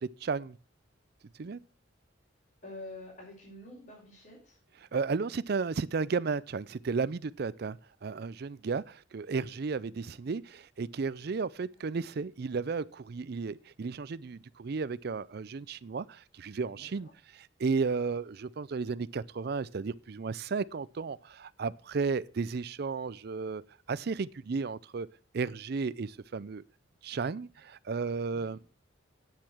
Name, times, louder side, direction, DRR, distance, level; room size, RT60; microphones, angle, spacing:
voice 1, 0.2-0.6 1.4-1.6 4.9-23.6 23.9-25.1 25.3-26.6 27.0-28.6, right 4 dB, 50° right, 0.4 m, -34 dB
voice 2, 2.6-4.6 16.7-17.1 28.3-28.6, left 2 dB, 45° left, 4.7 m, -47 dB
9.3 x 7.5 x 6.2 m
head